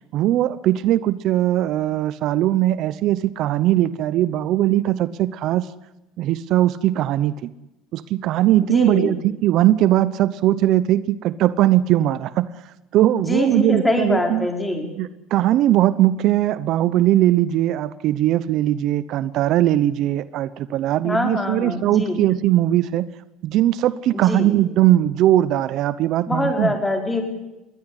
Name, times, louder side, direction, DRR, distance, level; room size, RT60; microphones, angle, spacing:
voice 1, 0.1-5.7 6.2-7.5 7.9-12.5 12.9-14.5 15.0-23.1 23.4-26.7, right 13 dB, 60° right, 16 dB, 0.8 m, -19 dB
voice 2, 8.6-9.2 13.2-14.8 21.0-22.2 24.1-24.5 26.3-27.2, left 1 dB, 10° left, 3 dB, 5.0 m, -23 dB
21.5 x 17.5 x 10.0 m, 0.95 s
supercardioid pair, 110°, 0 cm